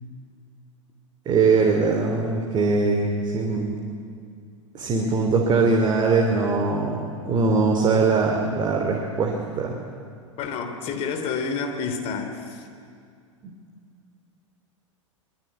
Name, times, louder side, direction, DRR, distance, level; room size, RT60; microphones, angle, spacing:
voice 1, 1.2-3.8 4.7-7.0 7.2-9.8 13.4-13.5, right 4 dB, 25° right, 1 dB, 2.9 m, -21 dB
voice 2, 10.4-12.6, left 5 dB, 35° left, 6 dB, 3.4 m, -29 dB
24.5 x 22.5 x 9.3 m, 2.3 s
figure-of-eight pair, 90°, 16 cm